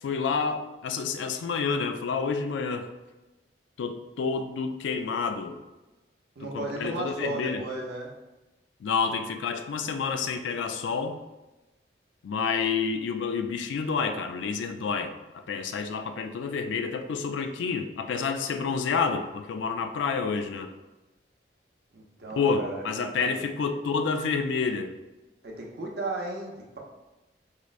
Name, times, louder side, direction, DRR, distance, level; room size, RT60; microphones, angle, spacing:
voice 1, 0.0-2.9 3.8-5.6 6.4-7.6 8.8-11.2 12.2-20.7 22.4-24.9, left 5 dB, 85° left, 7 dB, 0.3 m, -29 dB
voice 2, 6.4-8.1 21.9-22.8 23.2-23.4 25.4-26.8, right 2 dB, 60° right, -2 dB, 0.6 m, -35 dB
4.7 x 2.0 x 2.4 m, 1.0 s
head